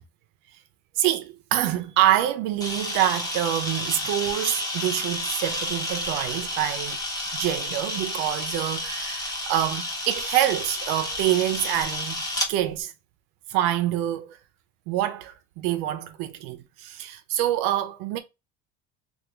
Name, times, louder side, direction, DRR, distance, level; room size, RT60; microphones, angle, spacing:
voice 1, 1.0-7.0 7.3-12.2 12.5-12.9 13.5-14.4 14.9-18.2, right 13 dB, 75° right, 0.6 m, -26 dB
Camera, 2.6-12.5, left 1 dB, 10° left, 0.6 m, -31 dB
3.5 x 2.3 x 2.9 m
cardioid pair, 175°, 37 cm